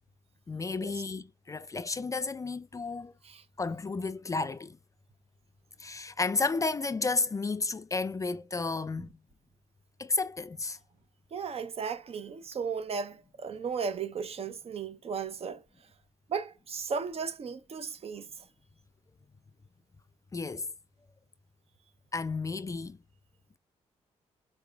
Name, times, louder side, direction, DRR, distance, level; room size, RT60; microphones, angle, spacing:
voice 1, 0.5-3.1 3.6-4.8 5.8-9.1 10.0-10.8 20.3-20.7 22.1-23.0, left 3 dB, 25° left, 0.4 m, -32 dB
voice 2, 11.3-15.6 16.3-18.3, right 6 dB, 50° right, 0.6 m, -35 dB
4.8 x 2.3 x 2.3 m
supercardioid pair, 60°, 13 cm